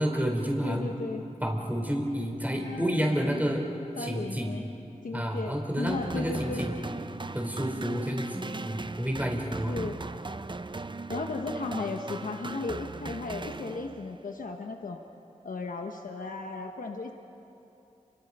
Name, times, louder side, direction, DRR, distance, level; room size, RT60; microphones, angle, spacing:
voice 1, 0.0-0.9 1.4-3.6 4.0-4.6 5.1-6.7 7.3-9.7, equal, 10° right, 1 dB, 3.8 m, -30 dB
voice 2, 0.6-1.3 2.5-3.6 4.0-4.7 5.0-6.6 9.7-10.0 11.1-15.0 15.4-17.1, left 3 dB, 90° left, 3 dB, 1.1 m, -35 dB
sound 1, 5.9-14.2, right 3 dB, 35° right, 0.7 m, -38 dB
29.5 x 24.5 x 5.5 m, 2.8 s
cardioid pair, 50°, 14 cm